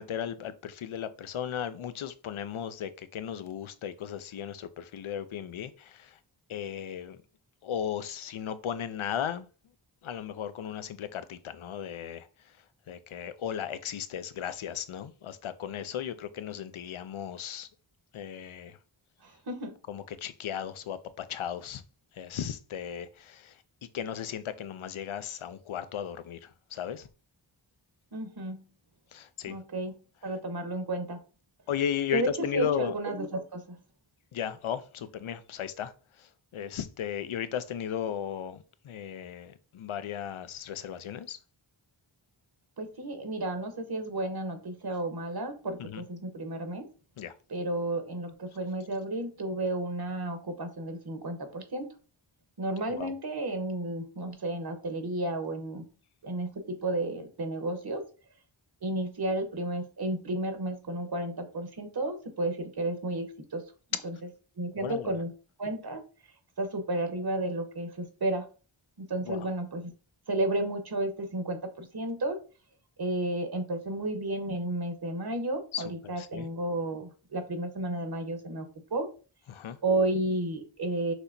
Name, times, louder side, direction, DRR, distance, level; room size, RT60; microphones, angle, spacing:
voice 1, 0.0-6.2 6.5-7.2 7.6-9.5 10.0-12.3 12.9-17.7 18.1-18.8 19.9-21.8 22.1-23.6 23.9-27.1 29.1-29.6 31.7-32.9 34.3-35.9 36.2-41.4 45.8-46.0 47.2-47.3 52.9-53.1 63.9-64.0 64.8-65.1 69.2-69.5 75.7-76.5 79.5-79.8, left 9 dB, 80° left, 0.6 m, -35 dB
voice 2, 19.2-19.7 28.1-28.6 29.5-29.9 30.2-31.2 32.1-33.8 42.8-46.9 47.5-51.9 52.6-55.9 56.2-58.0 58.8-63.6 64.0-64.1 64.6-65.3 65.6-66.0 66.6-68.5 69.0-69.9 70.3-72.4 73.0-79.1 79.8-81.1, right 2 dB, 50° right, 1.1 m, -32 dB
6.1 x 2.9 x 2.6 m
wide cardioid pair, 60°, 48 cm